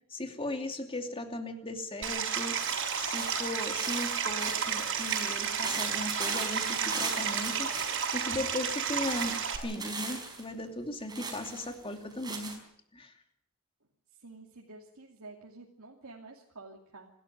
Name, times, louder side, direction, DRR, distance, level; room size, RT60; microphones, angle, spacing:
voice 1, 0.1-12.6 12.9-13.1, left 1 dB, 25° left, 5 dB, 2.7 m, -38 dB
Stream, 2.0-9.6, right 7 dB, 60° right, 5.0 m, -32 dB
sound 1, 2.6-8.4 9.0-10.4 11.1-12.6, right 4 dB, 20° right, 4.8 m, -39 dB
voice 2, 14.2-17.1, right 3 dB, 80° right, -1 dB, 2.7 m, -49 dB
27.0 x 13.0 x 9.2 m, 0.73 s
head